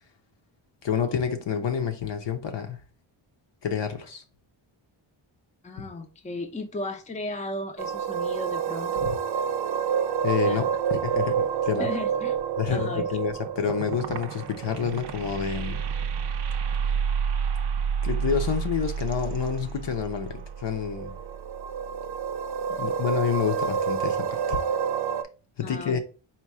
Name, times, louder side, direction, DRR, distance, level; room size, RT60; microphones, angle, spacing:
voice 1, 0.8-2.8 3.6-4.2 5.8-5.9 9.0-9.1 10.2-10.7 10.9-11.9 12.6-15.8 18.0-21.1 22.8-24.6 25.6-26.0, left 7 dB, 60° left, 0.8 m, -28 dB
voice 2, 5.6-9.1 10.4-10.6 11.8-12.4 12.7-13.2 25.6-26.0, left 2 dB, 15° left, 0.6 m, -35 dB
sound 1, 7.8-25.2, right 7 dB, 55° right, 0.5 m, -29 dB
4.4 x 2.3 x 4.7 m
wide cardioid pair, 105°, 49 cm